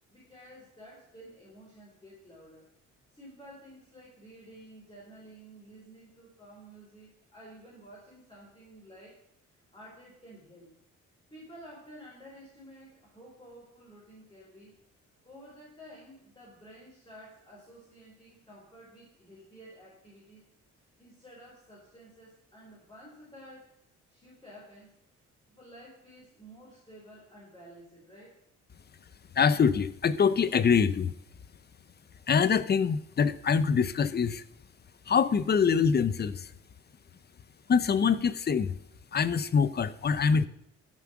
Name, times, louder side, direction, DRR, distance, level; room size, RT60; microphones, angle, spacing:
voice 1, 0.1-2.7 3.1-10.7 11.3-14.8 15.2-20.4 20.7-23.7 24.1-25.0 25.5-28.4, equal, 15° left, -5 dB, 3.9 m, -52 dB
voice 2, 29.4-31.1 32.3-34.4 35.1-36.5 37.7-38.7 39.1-40.5, left 6 dB, 35° left, 15 dB, 0.7 m, -24 dB
13.5 x 5.9 x 6.0 m, 0.75 s
cardioid pair, 90°, 30 cm